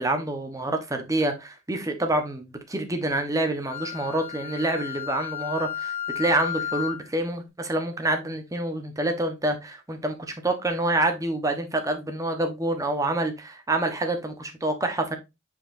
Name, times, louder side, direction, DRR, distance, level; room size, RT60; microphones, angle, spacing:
voice 1, 0.0-15.2, right 1 dB, 15° right, 1.0 m, -27 dB
Wind instrument woodwind instrument, 3.7-7.1, left 9 dB, 15° left, 1.9 m, -33 dB
8.0 x 4.6 x 2.6 m
head